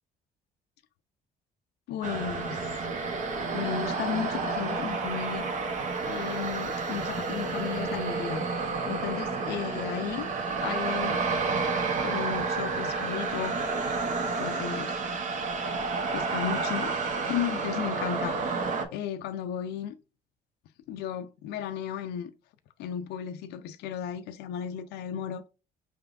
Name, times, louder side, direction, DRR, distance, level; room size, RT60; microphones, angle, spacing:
voice 1, 1.9-2.9 3.5-5.5 6.0-10.3 10.6-11.2 12.0-13.6 14.4-14.9 16.1-16.9 17.3-20.0 20.9-22.3 22.8-25.5, left 9 dB, 80° left, 0.4 m, -34 dB
sound 1, 2.0-18.8, right 4 dB, 45° right, 0.7 m, -30 dB
4.8 x 3.4 x 2.4 m
cardioid pair, 110°, 17 cm